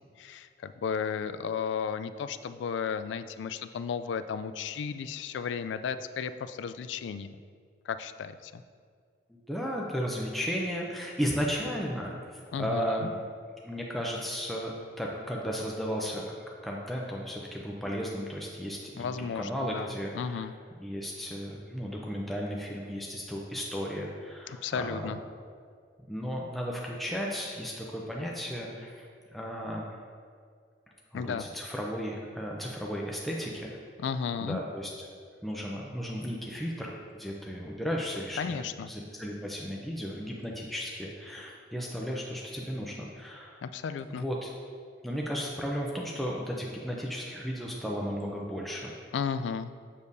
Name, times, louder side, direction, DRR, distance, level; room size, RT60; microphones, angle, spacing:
voice 1, 0.2-7.4 7.9-8.6 12.5-13.1 19.0-19.9 20.1-20.5 24.5-25.2 31.1-31.5 34.0-34.6 38.4-38.9 43.6-44.3 49.1-49.7, left 6 dB, 90° left, 11 dB, 0.3 m, -34 dB
voice 2, 9.3-13.2 13.6-20.5 20.8-25.1 26.1-29.1 29.3-29.9 31.1-33.8 34.4-34.9 35.4-36.9 37.2-43.6 44.1-44.5 45.0-48.9, equal, ahead, -3 dB, 0.5 m, -34 dB
7.3 x 6.5 x 2.7 m, 2.1 s
head